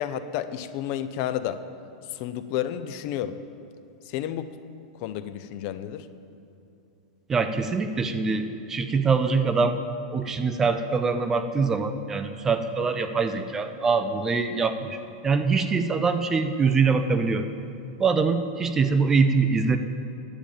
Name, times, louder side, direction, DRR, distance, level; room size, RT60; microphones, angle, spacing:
voice 1, 0.0-1.6 2.1-3.4 4.1-4.5 5.0-6.1, left 11 dB, 40° left, 12 dB, 0.5 m, -31 dB
voice 2, 7.3-9.8 10.1-15.0 15.2-17.5 18.0-19.8, right 4 dB, 15° right, 8 dB, 0.4 m, -23 dB
10.5 x 8.7 x 8.4 m, 2.8 s
supercardioid pair, 170°, 3 cm